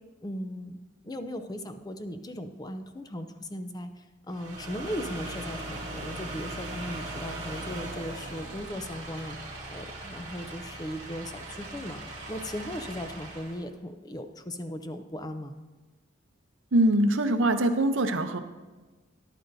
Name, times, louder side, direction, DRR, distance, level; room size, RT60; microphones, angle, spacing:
voice 1, 0.2-9.4 9.7-12.0 12.3-15.6, equal, 20° left, 8 dB, 0.5 m, -37 dB
sound 1, 4.3-13.6, right 2 dB, 35° right, 2.1 m, -39 dB
voice 2, 16.7-18.4, right 1 dB, 70° right, 7 dB, 0.7 m, -23 dB
12.5 x 10.5 x 2.7 m, 1.2 s
head